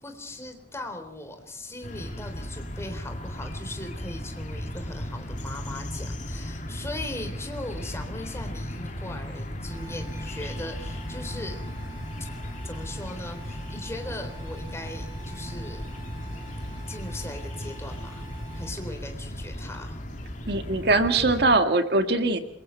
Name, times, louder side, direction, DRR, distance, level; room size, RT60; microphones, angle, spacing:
voice 1, 0.0-11.6 12.6-15.8 16.9-20.0, left 1 dB, 15° left, 5 dB, 3.6 m, -39 dB
sound 1, 1.8-21.5, equal, 45° left, 2.9 m, -36 dB
sound 2, 9.7-18.7, right 4 dB, 25° right, 5.1 m, -50 dB
voice 2, 20.5-22.4, right 2 dB, 65° right, 7 dB, 1.9 m, -22 dB
27.5 x 23.0 x 4.5 m, 0.65 s
head